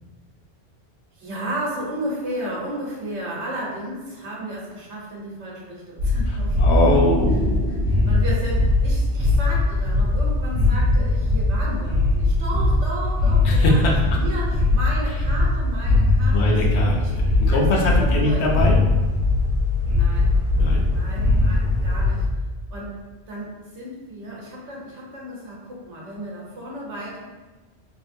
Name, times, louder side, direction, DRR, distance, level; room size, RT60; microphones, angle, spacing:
voice 1, 1.1-7.0 7.9-17.1 17.5-18.4 19.9-22.3 22.7-23.0 23.3-27.2, right 1 dB, 85° right, -4 dB, 1.2 m, -34 dB
Shadow Maker-Stairs, 6.0-22.3, left 2 dB, 45° right, 1.0 m, -20 dB
voice 2, 6.3-7.8 13.4-13.9 16.3-18.8 20.6-20.8, left 1 dB, 75° left, -1 dB, 0.9 m, -22 dB
3.5 x 2.8 x 2.6 m, 1.2 s
omnidirectional pair, 1.2 m